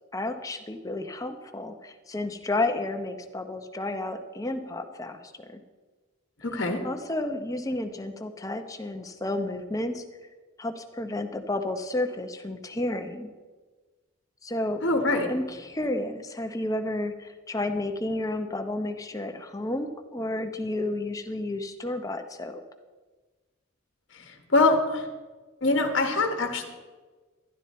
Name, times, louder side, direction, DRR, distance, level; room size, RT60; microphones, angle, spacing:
voice 1, 0.1-5.6 6.8-10.0 10.6-13.3 14.4-14.8 15.3-22.6, left 2 dB, 15° left, 6 dB, 0.8 m, -31 dB
voice 2, 6.4-6.8 14.8-15.3 24.1-25.1 25.6-26.7, left 2 dB, 60° left, 4 dB, 1.3 m, -24 dB
12.0 x 11.5 x 4.2 m, 1.3 s
head